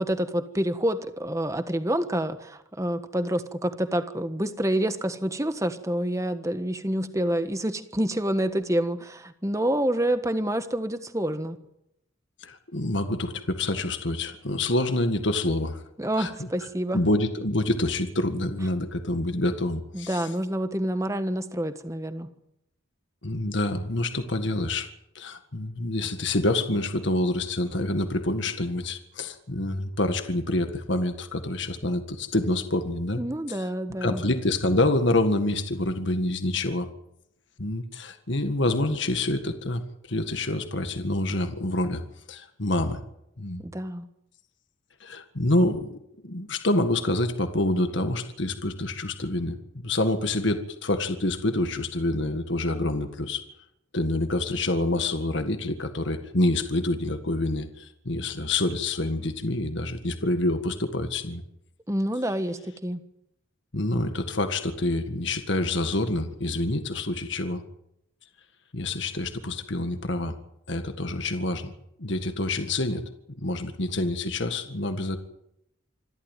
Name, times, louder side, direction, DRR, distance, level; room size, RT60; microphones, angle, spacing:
voice 1, 0.0-11.6 16.0-17.0 19.9-22.3 33.2-34.2 43.6-44.0 61.9-63.0, right 1 dB, 15° right, 9 dB, 1.4 m, -27 dB
voice 2, 12.4-15.8 16.2-16.5 16.9-20.2 23.2-24.9 25.2-33.2 33.5-33.6 34.0-36.9 37.6-39.8 40.1-42.0 42.3-43.0 43.4-43.6 45.0-46.0 46.2-53.4 53.9-61.4 63.7-67.6 68.7-70.4 70.7-71.7 72.0-73.0 73.4-75.2, left 2 dB, 60° left, 8 dB, 1.8 m, -27 dB
26.5 x 13.0 x 9.2 m, 0.82 s
head